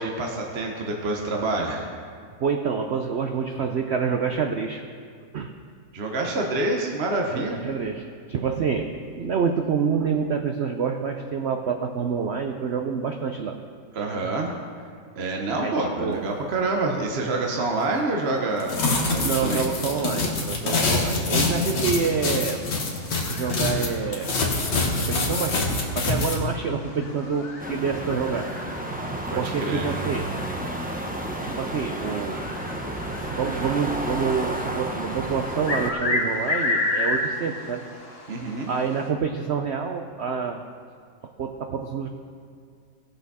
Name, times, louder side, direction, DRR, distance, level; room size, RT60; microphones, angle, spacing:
voice 1, 0.0-1.9 5.9-7.6 13.9-14.5 15.2-18.8 19.1-19.6 29.3-29.9 33.3-33.4 38.3-38.7, right 2 dB, 40° right, 1 dB, 1.1 m, -27 dB
voice 2, 2.4-4.8 5.3-5.5 7.3-13.6 15.6-16.2 17.6-17.7 19.2-22.6 23.3-24.4 25.0-25.6 26.0-28.5 29.4-30.3 31.4-32.5 32.8-32.9 33.4-37.9 38.7-40.6 41.4-42.1, right 6 dB, 85° right, 4 dB, 0.5 m, -27 dB
sound 1, 18.6-23.9 24.1-26.3, left 3 dB, 70° left, 2.1 m, -25 dB
sound 2, 23.1-39.1, left 2 dB, 40° left, 1.3 m, -33 dB
sound 3, 27.6-35.9, right 1 dB, 10° right, 0.4 m, -31 dB
18.0 x 7.0 x 4.2 m, 2.2 s
omnidirectional pair, 1.9 m